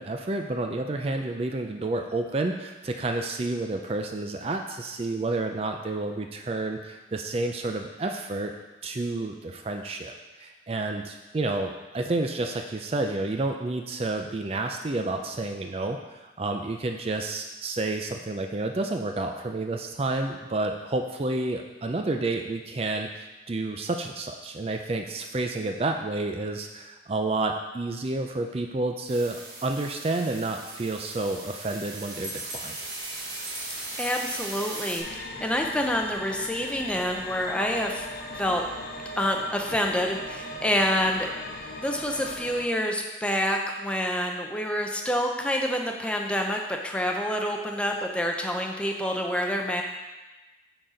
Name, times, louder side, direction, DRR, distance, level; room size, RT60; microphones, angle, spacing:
voice 1, 0.0-8.5 8.8-10.1 10.4-32.8, right 2 dB, 35° right, 4 dB, 0.4 m, -30 dB
sound 1, 29.1-35.0, right 2 dB, 55° right, 1.3 m, -39 dB
Bell, 31.9-35.6, right 1 dB, 75° right, 2.1 m, -41 dB
voice 2, 34.0-38.1 38.3-38.7 39.2-41.3 41.8-49.8, equal, 5° left, 2 dB, 0.6 m, -27 dB
sound 2, 35.0-42.7, left 1 dB, 55° left, 0.7 m, -39 dB
8.7 x 4.0 x 5.0 m, 1.1 s
head